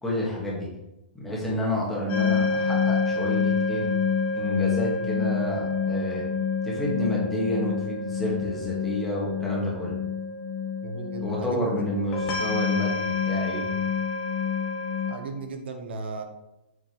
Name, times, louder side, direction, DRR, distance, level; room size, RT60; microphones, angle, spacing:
voice 1, 0.0-0.7 1.1-3.9 4.3-6.2 6.6-10.0 11.2-13.7, equal, 5° left, -6 dB, 1.9 m, -29 dB
sound 1, 2.1-15.1, left 5 dB, 25° left, 1.1 m, -27 dB
voice 2, 10.8-11.7 15.1-16.2, right 3 dB, 70° right, 5 dB, 1.1 m, -35 dB
7.4 x 5.7 x 3.3 m, 0.92 s
hypercardioid pair, 165°, 6 cm